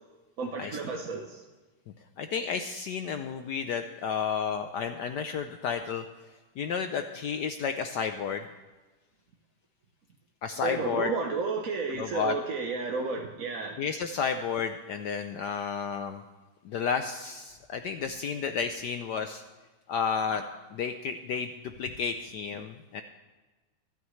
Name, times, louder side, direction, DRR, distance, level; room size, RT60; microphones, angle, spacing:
voice 1, 0.4-1.4 10.6-13.8, right 4 dB, 55° right, 1 dB, 1.0 m, -32 dB
voice 2, 2.2-6.0 6.6-8.4 10.4-11.1 11.9-12.3 13.8-16.2 16.6-19.4 19.9-20.4 20.7-21.5 21.8-23.0, left 6 dB, 70° left, 7 dB, 1.0 m, -31 dB
23.0 x 9.3 x 3.2 m, 1.2 s
omnidirectional pair, 2.4 m